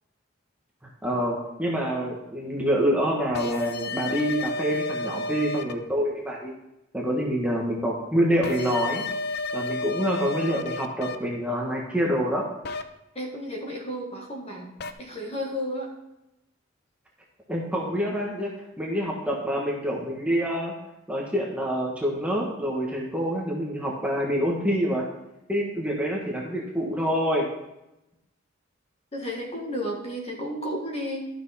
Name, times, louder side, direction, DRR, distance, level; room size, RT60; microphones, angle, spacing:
voice 1, 1.0-6.5 6.9-9.0 9.5-12.5 17.5-20.7 21.1-25.0 25.5-27.5, equal, 5° right, -2 dB, 1.3 m, -26 dB
sound 1, 3.3-5.7 8.4-11.2 12.6-12.8 14.8-14.9, left 3 dB, 50° left, 0.6 m, -31 dB
voice 2, 13.1-14.7 15.0-15.9 29.1-31.2, equal, 30° left, 0 dB, 1.7 m, -32 dB
12.0 x 6.1 x 4.2 m, 0.92 s
head